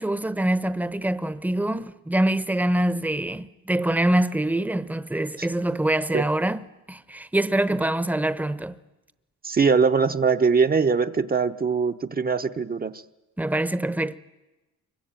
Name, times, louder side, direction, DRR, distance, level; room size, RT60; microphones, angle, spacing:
voice 1, 0.0-8.7 13.4-14.2, right 1 dB, 5° right, 1.0 m, -25 dB
voice 2, 9.4-13.0, right 5 dB, 30° right, 0.9 m, -22 dB
24.5 x 23.0 x 9.0 m
cardioid pair, 90°, 30 cm